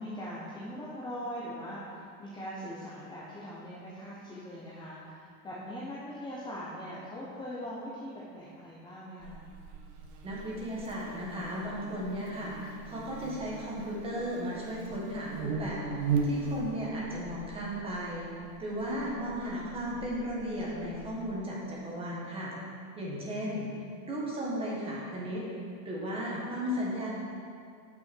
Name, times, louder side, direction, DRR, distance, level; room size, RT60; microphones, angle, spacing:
voice 1, 0.0-9.4 19.0-19.1, equal, 10° left, -7 dB, 0.8 m, -41 dB
Buzz, 9.2-21.3, right 4 dB, 60° right, 1.1 m, -39 dB
voice 2, 10.2-18.3 18.6-22.5 23.0-23.7 24.1-25.4 25.9-27.1, equal, 15° right, -5 dB, 1.7 m, -35 dB
12.5 x 6.0 x 4.6 m, 2.3 s
supercardioid pair, 170°, 42 cm